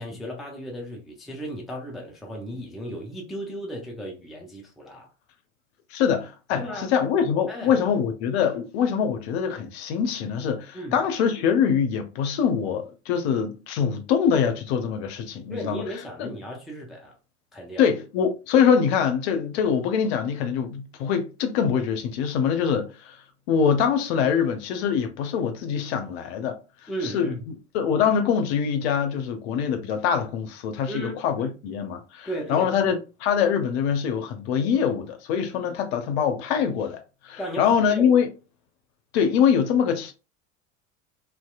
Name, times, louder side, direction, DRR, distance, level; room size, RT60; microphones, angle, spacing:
voice 1, 0.0-5.1 6.6-6.9 7.5-7.8 10.7-11.0 15.5-17.2 17.5-17.9 26.9-27.4 30.9-31.5 32.3-32.7 37.4-38.1, equal, ahead, 0.4 m, -35 dB
voice 2, 5.9-15.8 16.2-16.3 17.8-23.2 23.5-26.6 27.0-27.4 27.7-38.3 39.1-40.1, left 7 dB, 55° left, 0.6 m, -24 dB
2.7 x 2.0 x 2.3 m
figure-of-eight pair, 75°, 38 cm